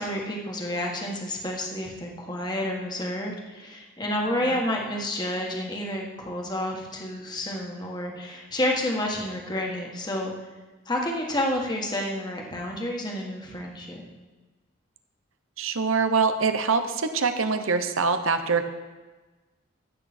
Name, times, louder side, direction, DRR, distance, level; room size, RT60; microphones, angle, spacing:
voice 1, 0.0-10.3 10.8-14.1, left 1 dB, 20° left, 0 dB, 1.6 m, -30 dB
voice 2, 4.3-4.6 15.6-18.6, right 4 dB, 80° right, 8 dB, 1.0 m, -24 dB
15.0 x 8.2 x 4.4 m, 1.2 s
head